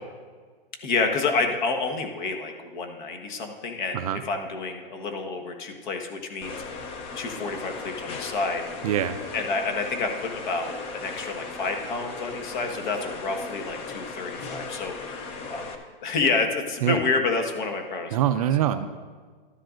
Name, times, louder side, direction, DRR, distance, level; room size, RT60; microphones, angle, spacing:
voice 1, 0.8-6.6 7.2-8.6 9.3-15.7 16.0-18.2, left 4 dB, 50° left, 5 dB, 1.4 m, -29 dB
sound 1, 6.4-15.8, left 4 dB, 20° left, 0.6 m, -37 dB
voice 2, 8.8-9.2 16.8-17.0 18.1-18.9, right 10 dB, 40° right, 10 dB, 0.4 m, -24 dB
13.0 x 10.0 x 2.5 m, 1.5 s
hypercardioid pair, 145°, 29 cm